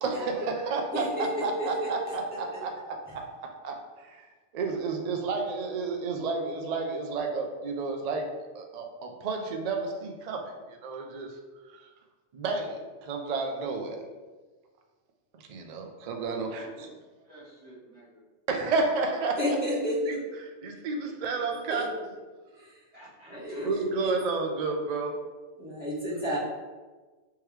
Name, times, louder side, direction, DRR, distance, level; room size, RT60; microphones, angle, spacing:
voice 1, 0.0-3.2 3.6-8.3 8.5-11.3 11.7-11.9 12.3-14.1 15.5-16.9 18.5-19.6 20.1-21.9 23.6-25.2, right 4 dB, 60° right, 3 dB, 0.4 m, -31 dB
voice 2, 0.9-2.4 19.4-20.2 21.7-21.8 22.6-22.8 23.3-24.1 25.6-26.4, equal, 10° right, -11 dB, 1.3 m, -31 dB
voice 3, 16.4-18.2 22.9-23.7 26.2-26.4, right 1 dB, 30° right, -11 dB, 1.5 m, -51 dB
3.5 x 3.1 x 3.1 m, 1.3 s
omnidirectional pair, 1.2 m